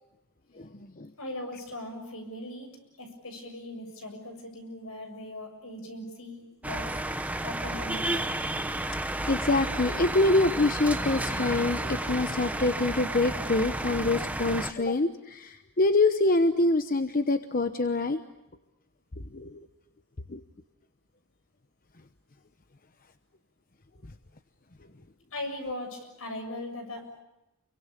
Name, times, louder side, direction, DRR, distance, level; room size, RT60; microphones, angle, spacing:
voice 1, 1.2-2.7 3.0-7.0 7.4-8.3 25.3-27.2, left 1 dB, 75° left, 5 dB, 7.3 m, -39 dB
sound 1, 6.6-14.7, right 1 dB, 5° right, 1.2 m, -32 dB
voice 2, 8.9-18.2 19.3-19.6 20.3-20.4, left 2 dB, 40° left, 8 dB, 1.0 m, -25 dB
29.5 x 23.5 x 8.5 m, 0.93 s
head